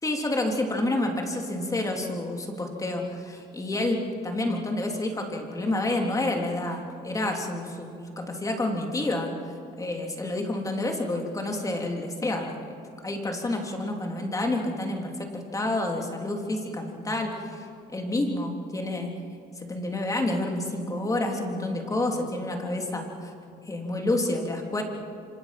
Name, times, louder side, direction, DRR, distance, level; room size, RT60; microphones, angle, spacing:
voice 1, 0.0-9.3 9.8-12.7 13.0-19.1 19.6-23.3 23.6-24.8, left 2 dB, 20° left, 2 dB, 3.5 m, -29 dB
27.0 x 25.5 x 6.1 m, 2.5 s
cardioid pair, 110°, 17 cm